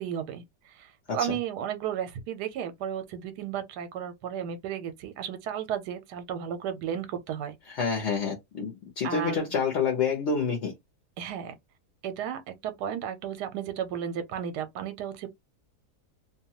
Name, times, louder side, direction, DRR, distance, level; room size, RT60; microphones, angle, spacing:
voice 1, 0.0-7.5 9.0-9.5 11.2-11.5 12.0-15.3, right 9 dB, 85° right, 1.2 m, -34 dB
voice 2, 7.7-10.7, left 5 dB, 55° left, 0.9 m, -28 dB
2.7 x 2.2 x 2.8 m
omnidirectional pair, 1.7 m